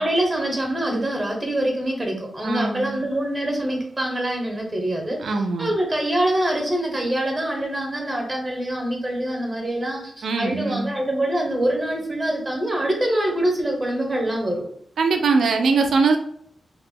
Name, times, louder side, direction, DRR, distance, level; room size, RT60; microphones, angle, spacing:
voice 1, 0.0-5.2 5.6-14.6, right 1 dB, 20° right, 1 dB, 0.6 m, -24 dB
voice 2, 2.4-3.0 5.2-5.7 10.2-10.9 15.0-16.2, right 4 dB, 80° right, 5 dB, 0.3 m, -21 dB
2.8 x 2.0 x 3.5 m, 0.65 s
wide cardioid pair, 175°, 0 cm